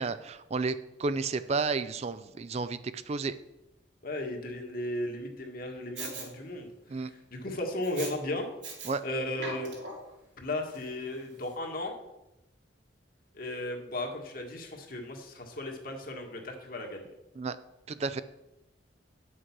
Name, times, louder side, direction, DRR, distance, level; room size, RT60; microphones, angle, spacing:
voice 1, 0.0-3.3 6.9-7.1 8.8-9.0 17.4-17.6 17.9-18.2, right 4 dB, 35° right, 13 dB, 0.4 m, -32 dB
voice 2, 4.0-6.7 7.0-8.5 9.0-9.7 10.4-11.9 13.3-17.1, left 1 dB, 55° left, 2 dB, 1.7 m, -35 dB
Respiratory sounds, 6.0-6.3 7.8-8.1 8.6-8.9 9.3-10.1 10.7-10.8, right 4 dB, 75° right, 3.0 m, -40 dB
9.2 x 6.4 x 6.0 m, 0.94 s
head